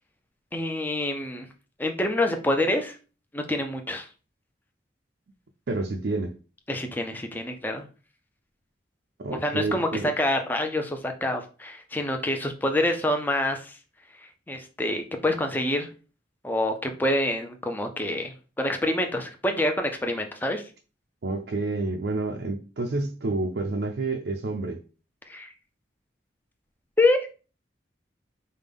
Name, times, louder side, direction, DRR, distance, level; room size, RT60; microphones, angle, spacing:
voice 1, 0.5-1.5 1.8-3.0 3.3-4.1 6.7-7.9 9.4-13.8 14.5-15.9 16.4-20.6 25.3-25.5 27.0-27.3, left 1 dB, 10° left, 0.5 m, -26 dB
voice 2, 5.7-6.3 9.2-10.1 21.2-24.8, right 2 dB, 65° right, 0.5 m, -29 dB
5.1 x 2.2 x 3.5 m
head